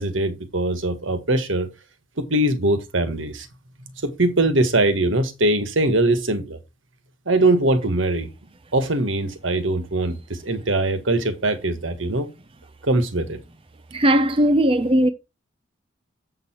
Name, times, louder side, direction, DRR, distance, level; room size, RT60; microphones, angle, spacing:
voice 1, 0.0-1.7 2.2-3.5 4.0-6.6 7.2-8.3 8.7-12.3 12.8-13.4, right 2 dB, 75° right, 1.7 m, -21 dB
voice 2, 13.9-15.1, right 1 dB, 30° right, 0.7 m, -18 dB
7.7 x 6.8 x 4.4 m
head